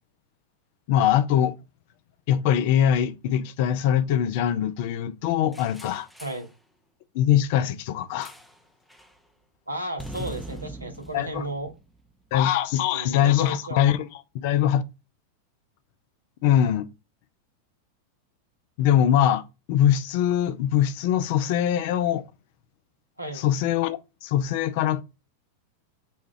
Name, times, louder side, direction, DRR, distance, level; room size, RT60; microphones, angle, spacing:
voice 1, 0.9-1.6 2.3-6.1 7.1-8.3 11.1-11.5 12.3-14.8 16.4-16.9 18.8-22.2 23.3-25.0, left 10 dB, 50° left, 0.5 m, -22 dB
sound 1, 5.5-6.5 8.2-8.6 8.9-9.2 10.0-12.3, right 1 dB, ahead, 0.6 m, -42 dB
voice 2, 9.7-11.7 12.9-13.8 23.2-23.4, right 1 dB, 85° right, 1.1 m, -34 dB
4.2 x 2.3 x 4.7 m
figure-of-eight pair, 90°, 0 cm